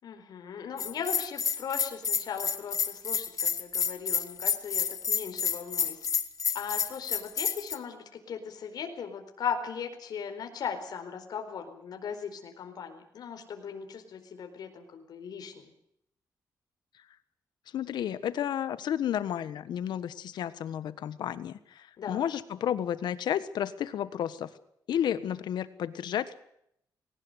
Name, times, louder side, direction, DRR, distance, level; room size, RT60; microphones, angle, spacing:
voice 1, 0.0-6.0 6.5-15.7 22.0-22.2, left 7 dB, 70° left, 5 dB, 4.4 m, -38 dB
Bell, 0.8-7.8, left 7 dB, 50° left, 1.7 m, -29 dB
voice 2, 17.7-24.5 24.9-26.3, left 10 dB, 90° left, 14 dB, 1.4 m, -32 dB
20.5 x 18.5 x 8.1 m, 0.73 s
wide cardioid pair, 140°, 7 cm